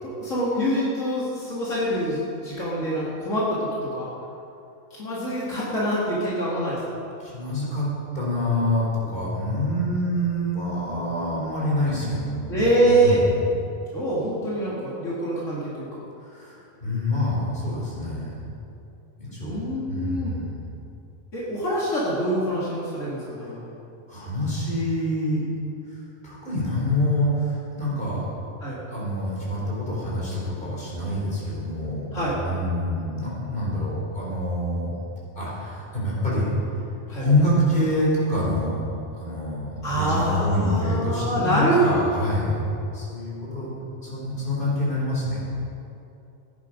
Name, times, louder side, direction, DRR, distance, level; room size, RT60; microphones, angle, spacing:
voice 1, 0.0-4.1 4.9-6.8 12.5-13.2 13.9-15.9 19.4-20.3 21.3-23.8 28.6-28.8 32.1-32.4 37.1-37.3 39.8-41.8, right 1 dB, 80° left, -8 dB, 2.7 m, -25 dB
voice 2, 7.2-7.9 8.1-13.5 16.2-18.5 19.2-19.6 19.9-20.8 23.2-23.6 24.1-25.5 26.2-28.3 28.9-34.9 35.4-36.5 37.2-42.6 42.9-43.7 44.0-45.5, left 1 dB, 40° left, -6 dB, 4.3 m, -26 dB
16.0 x 10.0 x 5.2 m, 2.8 s
omnidirectional pair, 1.3 m